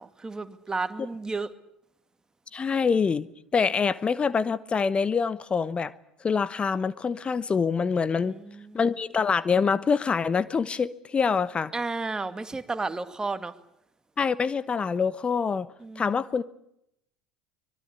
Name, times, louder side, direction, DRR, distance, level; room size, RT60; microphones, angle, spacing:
voice 1, 0.0-1.5 8.2-8.8 11.7-13.5 15.8-16.2, right 3 dB, 15° right, 2.3 m, -33 dB
voice 2, 2.5-5.9 6.2-8.3 8.7-11.7 14.2-15.7 16.0-16.4, left 5 dB, 25° left, 1.1 m, -25 dB
24.5 x 22.5 x 8.6 m
figure-of-eight pair, 65°, 4 cm